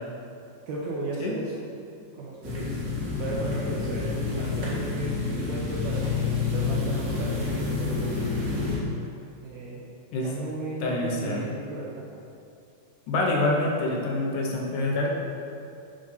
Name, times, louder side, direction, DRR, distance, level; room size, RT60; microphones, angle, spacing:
voice 1, 0.7-1.6 2.1-8.1 9.4-9.8 10.2-12.1, right 2 dB, 75° right, -5 dB, 1.7 m, -35 dB
sound 1, 2.4-8.8, left 4 dB, 40° right, 1.3 m, -29 dB
voice 2, 10.8-11.5 13.1-15.1, left 2 dB, 75° left, -1 dB, 2.1 m, -26 dB
7.4 x 3.7 x 5.4 m, 2.6 s
omnidirectional pair, 3.9 m